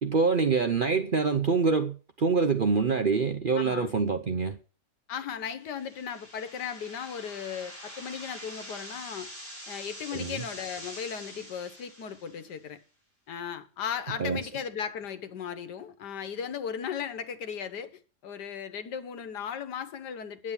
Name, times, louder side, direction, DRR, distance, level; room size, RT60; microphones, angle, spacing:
voice 1, 0.0-4.6 10.1-10.4 14.2-14.4, right 5 dB, 50° right, 0.6 m, -25 dB
voice 2, 3.5-3.9 5.1-9.3 9.7-12.8 13.3-20.5, left 7 dB, 85° left, 1.7 m, -36 dB
sound 1, 5.6-12.6, equal, 30° left, 6.4 m, -45 dB
9.9 x 7.4 x 7.1 m
omnidirectional pair, 1.7 m